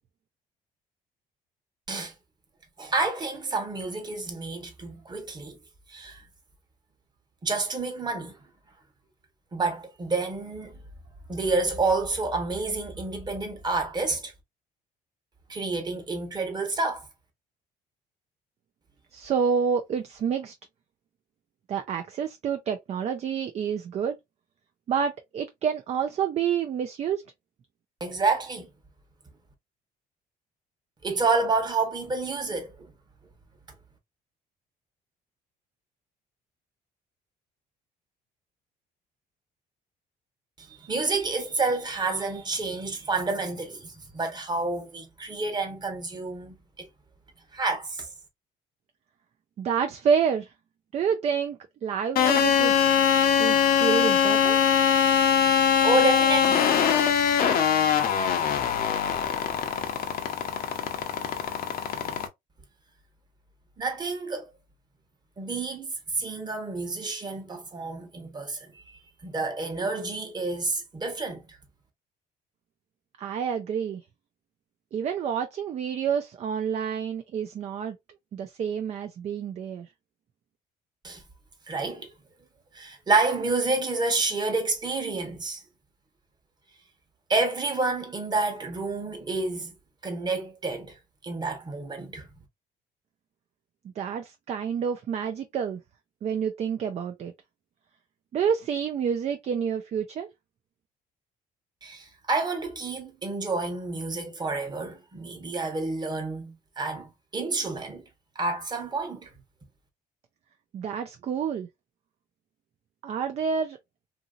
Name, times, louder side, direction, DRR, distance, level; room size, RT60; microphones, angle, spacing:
voice 1, 2.8-5.6 5.9-6.2 7.4-8.3 9.5-10.7 11.3-14.3 15.5-17.0 28.0-28.7 31.0-32.7 40.6-46.9 47.5-48.1 55.5-57.0 63.8-64.5 65.4-68.8 69.2-71.4 81.0-81.2 81.7-82.1 82.7-85.6 87.3-89.7 90.0-90.9 91.2-92.3 101.8-108.0 108.3-109.3, right 3 dB, 25° right, 1.0 m, -29 dB
voice 2, 19.1-20.5 21.7-24.2 24.9-27.2 49.6-50.5 50.9-53.1 53.4-54.6 73.2-74.0 74.9-78.0 78.3-79.9 94.0-95.8 96.2-97.3 98.3-100.3 110.7-111.7 113.0-113.8, right 7 dB, 40° right, 0.4 m, -28 dB
sound 1, 52.2-62.3, left 8 dB, 60° left, 0.7 m, -22 dB
2.8 x 2.7 x 2.4 m
cardioid pair, 110°, 17 cm